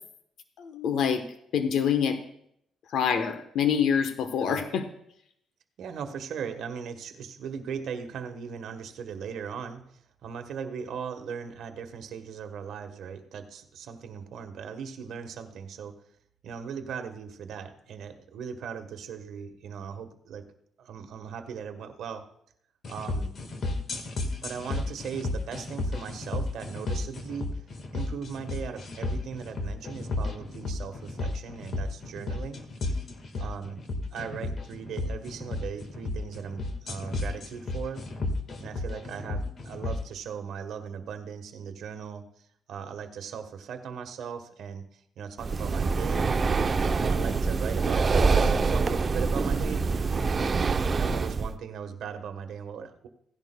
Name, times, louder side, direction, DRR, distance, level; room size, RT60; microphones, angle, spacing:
voice 1, 0.6-1.2 1.5-2.2 2.9-4.8, left 7 dB, 75° left, 8 dB, 1.0 m, -26 dB
voice 2, 5.8-9.8 10.2-16.0 16.4-20.5 20.8-22.3 22.9-23.3 24.4-27.6 27.9-32.6 33.4-33.8 34.1-38.0 38.6-42.2 42.7-44.8 45.2-46.3 46.8-49.8 51.0-53.1, right 7 dB, 75° right, 6 dB, 1.2 m, -38 dB
sound 1, 22.8-40.0, left 2 dB, 50° left, 1.5 m, -33 dB
Breathing, 45.4-51.5, right 4 dB, 40° right, 0.5 m, -25 dB
16.5 x 11.0 x 2.2 m, 0.71 s
cardioid pair, 90°, 0 cm